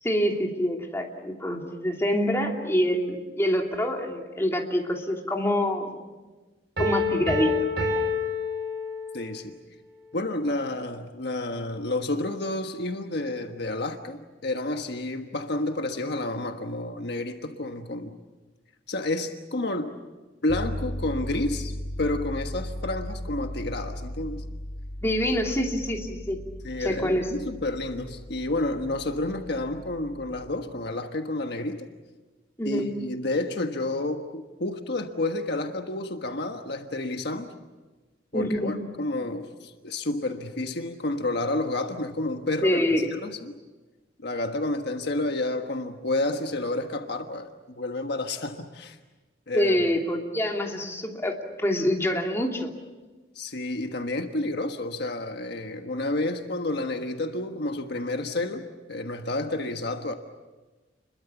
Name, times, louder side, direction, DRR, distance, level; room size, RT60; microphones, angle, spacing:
voice 1, 0.0-5.9 6.8-7.9 25.0-26.4 26.8-27.2 32.6-32.9 38.3-38.7 42.6-43.1 49.5-52.7, equal, 15° left, 1 dB, 2.8 m, -26 dB
Piano, 6.8-9.3, left 2 dB, 65° right, 4.9 m, -27 dB
voice 2, 9.1-9.5 10.1-18.2 18.9-19.9 20.4-24.4 26.6-31.9 32.6-37.5 38.3-43.5 44.2-47.5 47.8-49.0 49.5-49.8 53.3-60.1, left 2 dB, 65° left, 5 dB, 1.4 m, -30 dB
sound 1, 20.5-30.6, equal, 45° left, 1.7 m, -37 dB
30.0 x 22.5 x 7.2 m, 1.2 s
head